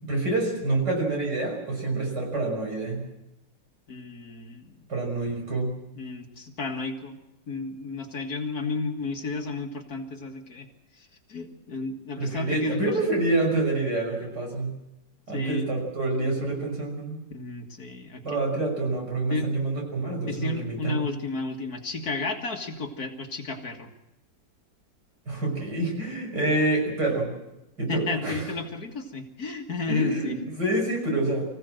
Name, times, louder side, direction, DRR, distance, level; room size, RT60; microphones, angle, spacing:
voice 1, 0.0-3.0 4.9-5.7 12.2-14.7 15.3-17.2 18.2-21.0 25.3-27.3 27.8-28.4 29.9-31.5, right 2 dB, 65° right, 1 dB, 6.8 m, -27 dB
voice 2, 3.9-4.8 6.0-7.2 7.5-10.7 10.9-12.9 15.3-15.7 17.3-18.4 19.3-19.6 20.3-23.9 27.9-30.4, left 3 dB, 55° left, 3 dB, 2.3 m, -32 dB
25.0 x 16.0 x 7.8 m, 0.92 s
omnidirectional pair, 2.0 m